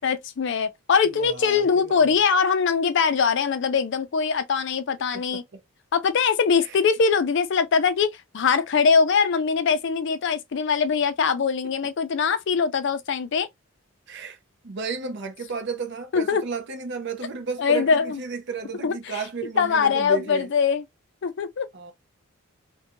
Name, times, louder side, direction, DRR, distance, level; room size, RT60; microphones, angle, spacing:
voice 1, 0.0-5.4 5.9-13.5 16.1-16.4 17.6-18.2 18.8-19.2 19.6-20.8 21.2-21.7, left 5 dB, 55° left, 0.4 m, -22 dB
voice 2, 1.0-2.1 5.1-5.6 6.6-6.8 11.8-11.9 14.1-14.4 14.6-20.5 21.7-21.9, right 4 dB, 50° right, 0.5 m, -33 dB
2.5 x 2.2 x 2.7 m
head